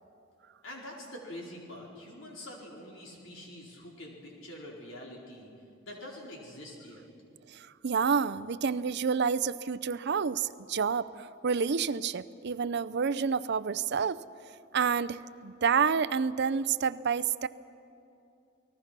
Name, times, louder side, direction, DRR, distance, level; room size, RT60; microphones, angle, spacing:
voice 1, 0.6-5.5 5.8-7.0, left 1 dB, 70° left, -2 dB, 4.9 m, -45 dB
voice 2, 7.5-14.2 14.7-17.5, right 6 dB, 55° right, 16 dB, 0.5 m, -29 dB
29.0 x 19.5 x 6.0 m, 2.7 s
head